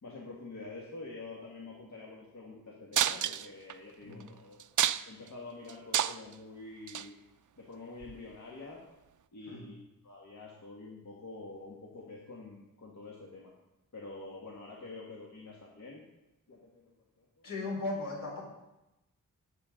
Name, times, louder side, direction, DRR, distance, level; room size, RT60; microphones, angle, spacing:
voice 1, 0.0-4.6 5.1-7.1 7.6-8.8 9.3-9.8 10.0-13.5 13.9-16.0 16.5-16.9 17.2-17.5, left 3 dB, 55° left, -3 dB, 2.0 m, -47 dB
sound 1, 2.9-3.7 4.2-4.3 4.6-5.3 5.7-6.3 6.9-7.1 8.0-8.1, right 10 dB, 65° right, 0.5 m, -29 dB
voice 2, 17.4-18.4, left 2 dB, 70° left, -3 dB, 4.6 m, -37 dB
18.0 x 8.4 x 3.9 m, 0.96 s
wide cardioid pair, 110°, 34 cm